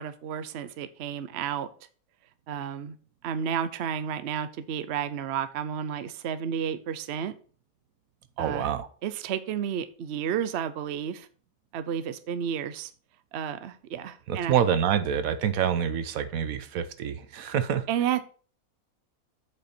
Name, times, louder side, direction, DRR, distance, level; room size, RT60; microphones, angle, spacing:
voice 1, 0.0-1.7 2.5-3.0 3.2-7.4 8.4-8.7 9.0-11.3 11.7-12.9 13.3-14.6 17.9-18.2, right 8 dB, 55° right, 0.8 m, -31 dB
voice 2, 8.4-8.9 14.3-17.9, right 8 dB, 75° right, 1.1 m, -27 dB
7.8 x 5.3 x 4.3 m
omnidirectional pair, 1.5 m